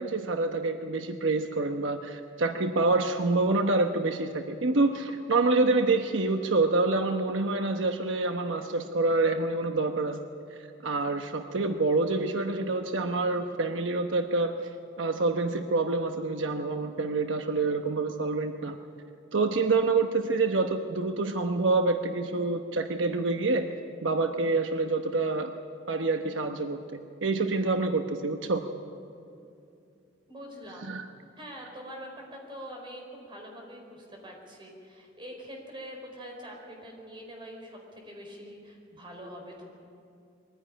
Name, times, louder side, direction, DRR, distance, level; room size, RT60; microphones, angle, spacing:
voice 1, 0.0-10.2 10.8-14.5 15.0-18.8 19.3-23.7 24.0-25.6 25.9-28.6 30.8-31.0, right 3 dB, 85° right, 6 dB, 1.0 m, -27 dB
voice 2, 30.3-31.0 31.4-39.7, equal, 25° right, 1 dB, 4.7 m, -44 dB
22.0 x 15.5 x 9.9 m, 2.5 s
head